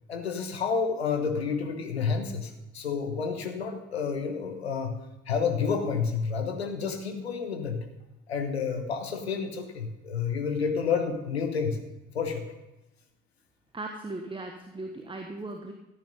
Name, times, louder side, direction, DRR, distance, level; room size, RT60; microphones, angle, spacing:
voice 1, 0.1-5.0 5.3-7.9 8.3-11.8 12.1-12.5, left 5 dB, 80° left, 5 dB, 1.3 m, -30 dB
voice 2, 13.7-15.7, right 2 dB, 15° right, 4 dB, 1.5 m, -38 dB
14.5 x 9.0 x 5.4 m, 0.99 s
figure-of-eight pair, 45°, 31 cm